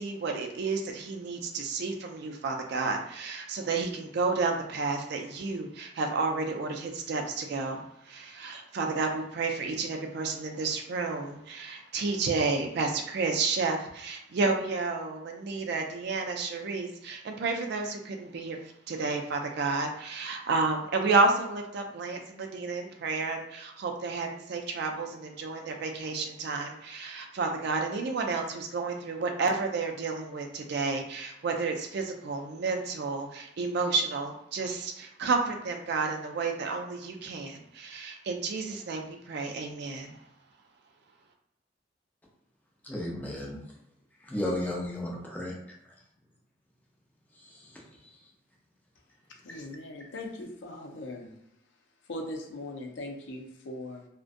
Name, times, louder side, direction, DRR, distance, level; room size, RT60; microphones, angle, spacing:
voice 1, 0.0-18.6 18.9-40.2, right 4 dB, 60° right, 3 dB, 0.3 m, -31 dB
voice 2, 42.8-43.6 44.3-45.5 47.4-47.6, left 1 dB, 10° left, -3 dB, 0.6 m, -33 dB
voice 3, 49.4-51.3 52.1-54.1, left 1 dB, 80° left, 2 dB, 0.5 m, -40 dB
2.5 x 2.1 x 2.5 m, 0.82 s
head